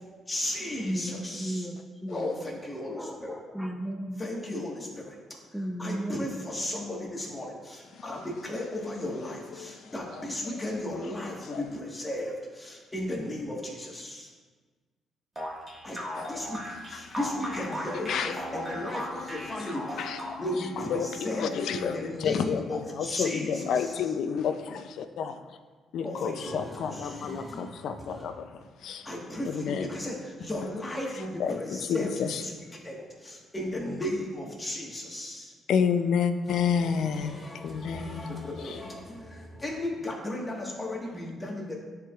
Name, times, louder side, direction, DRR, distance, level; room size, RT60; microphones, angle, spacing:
voice 1, 0.3-1.6 2.1-3.4 4.2-5.4 5.8-14.3 15.8-20.1 20.4-24.0 26.0-28.3 29.0-35.5 36.5-41.8, left 1 dB, 20° left, -2 dB, 1.5 m, -35 dB
voice 2, 0.8-2.3 2.9-4.3 5.5-6.5, right 1 dB, ahead, 2 dB, 0.6 m, -35 dB
voice 3, 7.9-8.2 9.6-10.2 11.5-11.7 16.1-16.5 16.9-17.0 17.9-18.4 18.8-18.9 19.5-19.7 20.0-20.4 20.8-25.4 25.9-28.5 28.8-29.1 29.5-29.9 31.4-32.4 35.7-38.4 38.6-38.8, left 7 dB, 75° left, 9 dB, 0.4 m, -30 dB
sound 1, 15.4-20.7, equal, 20° right, 1.7 m, -37 dB
Wind instrument woodwind instrument, 17.5-22.1, left 6 dB, 40° left, 0.8 m, -45 dB
9.9 x 4.6 x 2.4 m, 1.4 s
cardioid pair, 90°, 0 cm